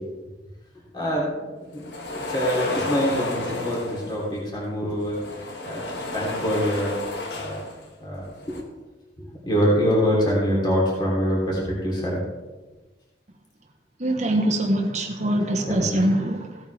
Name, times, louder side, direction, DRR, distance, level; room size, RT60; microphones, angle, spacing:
voice 1, 0.9-1.5 1.7-6.9 7.3-7.6 8.0-8.6 9.2-12.2 15.7-16.0, equal, 25° left, -5 dB, 3.4 m, -25 dB
sound 1, 1.7-4.3 5.0-7.9 8.2-8.6, left 2 dB, 70° left, 1.6 m, -32 dB
voice 2, 14.0-16.6, right 1 dB, 40° right, 2 dB, 1.2 m, -23 dB
16.5 x 8.8 x 3.5 m, 1.2 s
head